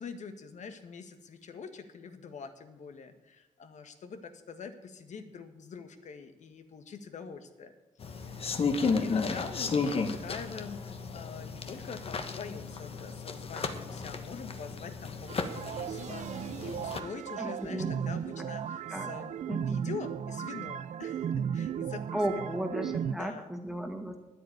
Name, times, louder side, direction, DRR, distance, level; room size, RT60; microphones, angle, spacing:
voice 1, 0.0-7.7 8.2-22.6 23.1-23.5, left 5 dB, 65° left, 8 dB, 1.6 m, -44 dB
sound 1, 8.0-17.0, left 4 dB, 45° left, 1.2 m, -34 dB
sound 2, 15.3-23.2, right 8 dB, 65° right, 0.6 m, -35 dB
voice 2, 17.4-17.9 18.9-19.1 19.5-19.8 22.1-24.2, right 1 dB, 5° right, 4 dB, 1.8 m, -34 dB
10.0 x 9.0 x 9.2 m, 1.0 s
cardioid pair, 85°, 13 cm